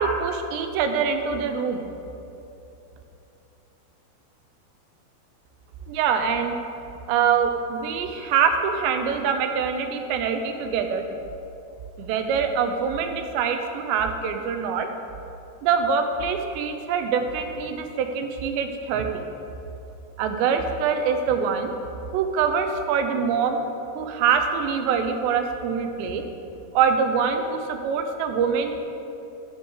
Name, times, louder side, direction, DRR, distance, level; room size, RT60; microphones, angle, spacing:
voice 1, 0.0-1.9 5.9-6.6 7.1-11.2 12.0-14.9 15.6-19.1 20.2-21.7 22.1-23.6 24.0-26.2 26.7-28.8, right 6 dB, 85° right, 6 dB, 3.0 m, -24 dB
10.0 x 5.6 x 8.1 m, 2.8 s
omnidirectional pair, 4.9 m